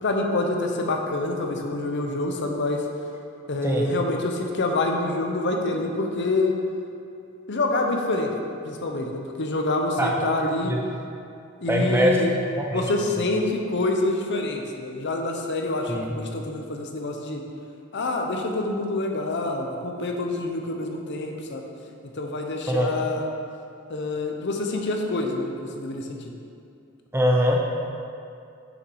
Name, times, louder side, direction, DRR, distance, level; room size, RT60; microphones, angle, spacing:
voice 1, 0.0-2.9 3.5-6.5 7.5-8.3 8.6-10.7 11.6-12.4 12.7-17.4 17.9-21.6 22.1-23.2 23.9-26.3, left 2 dB, 60° left, 2 dB, 0.8 m, -26 dB
voice 2, 11.7-12.2 12.6-12.8 15.9-16.0 22.7-22.9 27.1-27.6, equal, 10° right, 0 dB, 0.8 m, -22 dB
6.5 x 6.2 x 4.7 m, 2.5 s
head